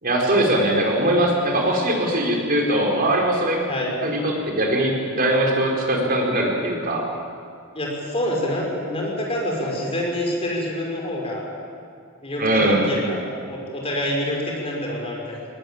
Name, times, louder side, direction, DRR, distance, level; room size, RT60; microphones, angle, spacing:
voice 1, 0.0-3.6 4.0-7.1 12.4-12.9, right 1 dB, 45° right, 0 dB, 4.8 m, -21 dB
voice 2, 3.7-4.0 7.7-11.5 12.2-15.5, left 1 dB, 30° left, -1 dB, 5.7 m, -27 dB
19.5 x 19.5 x 8.9 m, 2.3 s
head